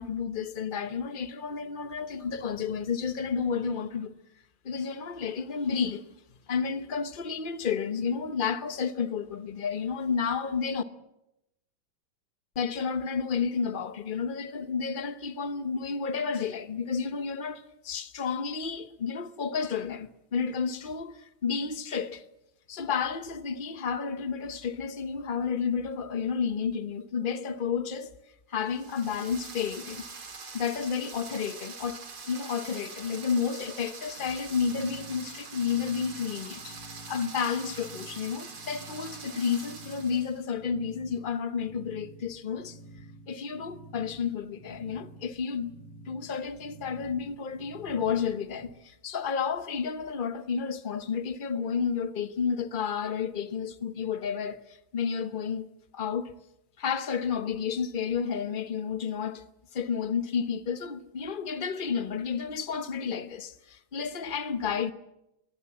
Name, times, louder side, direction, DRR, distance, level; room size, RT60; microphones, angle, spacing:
voice 1, 0.0-4.1 4.6-6.1 6.5-10.8 12.6-22.2 22.7-28.2 28.5-30.0 30.5-45.7 46.1-55.7 55.9-56.3 56.8-59.4 59.7-64.9, left 6 dB, 75° left, 0.4 m, -31 dB
sound 1, 28.7-40.4, right 4 dB, 75° right, 3.7 m, -44 dB
sound 2, 34.2-48.7, right 1 dB, 45° left, 7.1 m, -50 dB
22.5 x 19.0 x 7.4 m
omnidirectional pair, 2.4 m